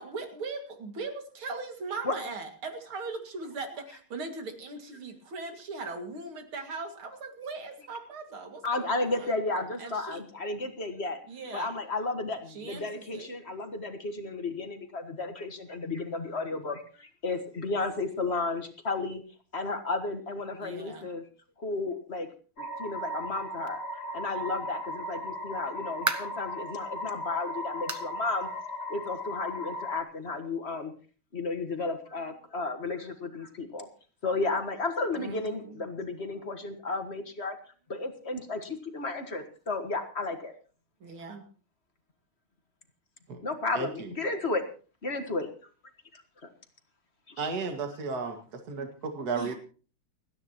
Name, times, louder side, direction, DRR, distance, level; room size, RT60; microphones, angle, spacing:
voice 1, 0.0-9.3 9.8-10.2 11.3-11.7 12.5-13.3 20.6-21.1 35.1-35.8 41.0-41.4 49.3-49.5, right 3 dB, 80° right, 5 dB, 3.1 m, -39 dB
voice 2, 8.6-11.2 11.5-19.2 19.5-21.2 21.6-22.3 22.6-28.5 28.9-30.9 31.3-33.9 34.2-37.6 37.9-40.5 43.4-44.6 45.0-45.5 46.1-46.5 47.3-47.4, left 3 dB, 35° left, 6 dB, 1.6 m, -33 dB
sound 1, 22.6-30.0, left 1 dB, 50° left, 2.5 m, -37 dB
sound 2, 25.4-26.5 27.0-27.1 27.9-28.1 28.5-28.6 29.1-29.2 30.3-30.4, right 2 dB, 20° right, 0.4 m, -34 dB
voice 3, 43.7-44.1 47.4-48.4 48.7-49.5, right 4 dB, 50° right, 4 dB, 2.4 m, -33 dB
29.5 x 10.0 x 2.9 m, 0.40 s
omnidirectional pair, 2.3 m